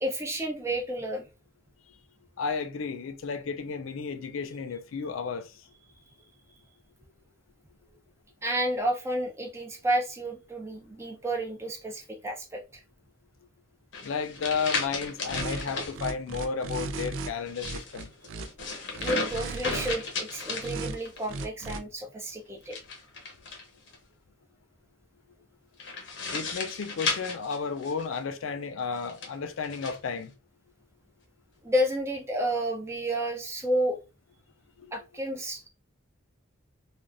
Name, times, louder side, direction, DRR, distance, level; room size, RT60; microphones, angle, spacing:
voice 1, 0.0-1.3 8.4-12.8 19.0-22.8 31.6-34.0 34.9-35.6, right 1 dB, 15° right, 0.6 m, -30 dB
voice 2, 2.4-5.5 14.0-18.1 26.3-30.3 34.8-34.9, left 5 dB, 80° left, 0.4 m, -33 dB
sound 1, 13.9-15.9 17.4-21.3 22.6-24.0 25.8-28.2 29.0-30.0, left 3 dB, 65° left, 0.9 m, -35 dB
sound 2, 15.3-15.6 15.9-17.3 17.6-18.5 18.9-20.0 20.6-21.0 21.3-21.8, right 3 dB, 75° right, 0.4 m, -35 dB
3.2 x 2.5 x 2.5 m
head